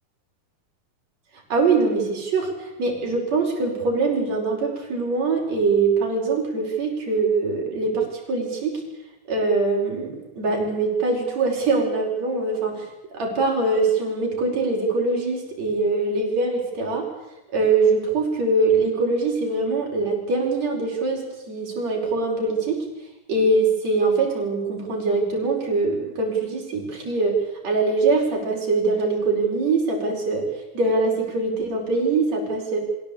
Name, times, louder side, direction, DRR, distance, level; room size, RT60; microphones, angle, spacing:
voice 1, 1.5-8.8 9.3-17.1 17.5-22.9 23.3-30.5 30.7-32.8, right 3 dB, 50° right, 0 dB, 6.2 m, -23 dB
24.5 x 16.5 x 8.6 m, 0.99 s
omnidirectional pair, 4.1 m